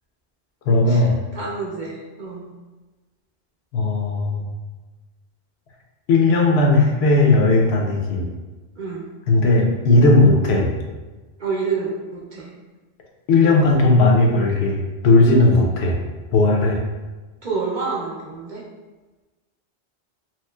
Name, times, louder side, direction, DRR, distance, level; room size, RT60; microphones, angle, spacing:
voice 1, 0.7-1.1 3.7-4.5 6.1-8.3 9.3-10.7 13.3-16.0 16.3-16.8, left 2 dB, 75° left, -1 dB, 0.8 m, -16 dB
voice 2, 1.3-2.5 8.8-9.1 11.4-12.5 17.4-18.6, right 4 dB, 50° right, -5 dB, 0.6 m, -28 dB
3.0 x 2.9 x 2.2 m, 1.2 s
omnidirectional pair, 1.1 m